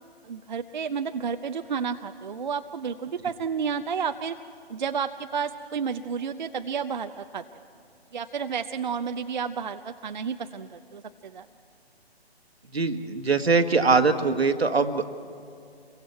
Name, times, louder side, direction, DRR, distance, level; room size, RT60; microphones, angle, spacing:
voice 1, 0.2-4.4 4.7-7.4 8.1-11.5, right 6 dB, 45° right, 8 dB, 0.6 m, -31 dB
voice 2, 12.7-15.2, right 4 dB, 75° right, 8 dB, 1.5 m, -22 dB
28.0 x 23.0 x 4.6 m, 2.4 s
figure-of-eight pair, 140°, 32 cm